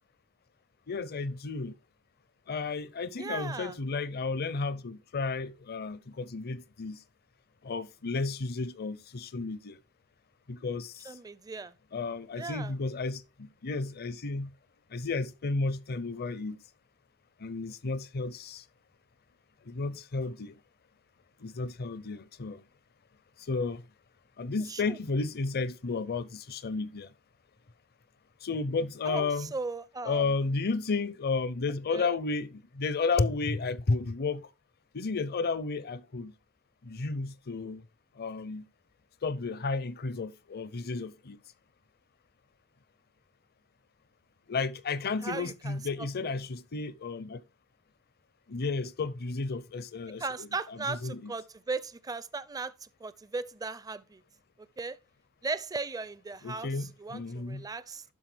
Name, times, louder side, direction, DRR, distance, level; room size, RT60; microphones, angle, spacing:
voice 1, 0.9-1.7 2.5-7.0 7.6-9.8 10.5-11.2 11.9-14.5 14.9-16.6 17.4-18.6 19.7-20.5 21.4-22.6 23.4-23.8 24.4-27.1 28.4-29.5 30.0-34.5 34.9-36.3 36.8-37.8 38.2-38.7 39.2-41.4 44.5-47.4 48.5-51.3 56.4-57.7, left 4 dB, 45° left, 0.6 m, -32 dB
voice 2, 3.2-3.8 11.0-11.8 12.3-12.7 24.7-25.0 29.0-30.4 31.9-32.1 45.2-45.8 50.2-54.2 54.6-55.0 55.4-58.0, right 3 dB, 15° right, 0.4 m, -37 dB
12.0 x 4.7 x 3.4 m
head